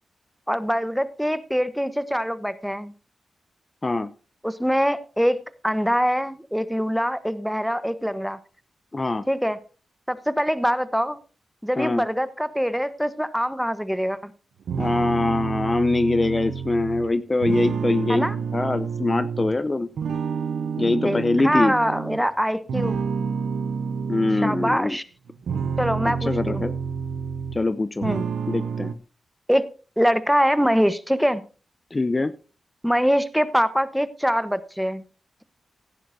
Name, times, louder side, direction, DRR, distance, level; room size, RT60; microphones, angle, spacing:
voice 1, 0.5-2.9 4.4-8.4 9.3-9.6 10.1-11.2 11.6-14.3 18.1-18.4 20.8-23.0 24.3-25.0 25.8-26.6 28.0-28.3 29.5-29.7 30.0-31.4 32.8-35.0, equal, ahead, 13 dB, 1.0 m, -24 dB
voice 2, 8.9-9.3 11.8-12.1 14.8-19.9 20.8-21.8 24.1-25.0 26.1-26.7 27.5-28.1 28.5-28.9 31.9-32.4, left 2 dB, 30° left, 13 dB, 0.6 m, -23 dB
sound 1, 14.7-19.6 20.0-22.2 22.7-24.8 25.3-27.7 28.0-28.9, right 6 dB, 90° right, 0.8 m, -29 dB
17.0 x 10.5 x 2.7 m, 0.34 s
cardioid pair, 60°, 0 cm